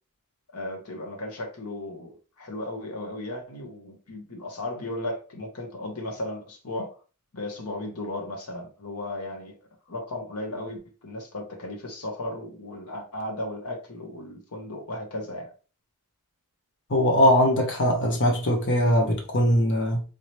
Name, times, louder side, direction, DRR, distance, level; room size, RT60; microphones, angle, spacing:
voice 1, 0.5-7.0 7.3-9.5 9.9-15.5, left 1 dB, 90° left, 1.2 m, -35 dB
voice 2, 16.9-20.0, equal, 55° left, 0.8 m, -21 dB
3.8 x 2.9 x 3.2 m
head